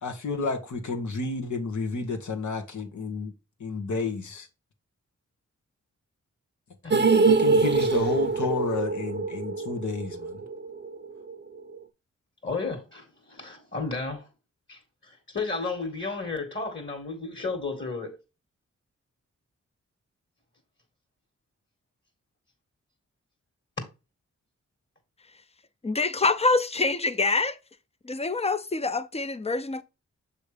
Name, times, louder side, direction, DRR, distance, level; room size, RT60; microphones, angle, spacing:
voice 1, 0.0-3.3 3.6-4.5 6.9-10.4, left 3 dB, 80° left, 1.4 m, -31 dB
sound 1, 6.9-11.0 11.3-11.4 11.8-11.9, right 4 dB, 35° right, 0.8 m, -24 dB
voice 2, 12.4-14.3 14.7-18.2, left 3 dB, 40° left, 2.0 m, -33 dB
voice 3, 25.8-27.6 28.0-29.8, left 3 dB, 20° left, 0.7 m, -25 dB
7.0 x 3.2 x 4.9 m
cardioid pair, 65°, 29 cm